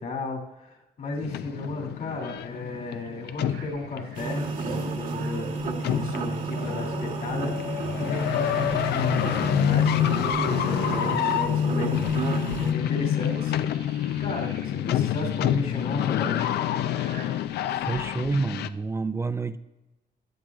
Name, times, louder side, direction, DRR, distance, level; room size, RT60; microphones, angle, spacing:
voice 1, 0.0-13.5 14.1-16.4, left 3 dB, 55° left, 1 dB, 2.7 m, -34 dB
sound 1, 1.2-18.7, left 11 dB, 85° left, 0.5 m, -28 dB
sound 2, 1.3-6.2 6.5-6.7 7.0-9.7 10.2-18.3, right 5 dB, 80° right, 3.1 m, -48 dB
sound 3, 4.1-12.7, right 3 dB, 55° right, 1.3 m, -31 dB
voice 2, 17.7-19.6, right 3 dB, 15° right, 12 dB, 0.5 m, -28 dB
16.5 x 11.5 x 2.4 m, 1.0 s
cardioid pair, 135°, 17 cm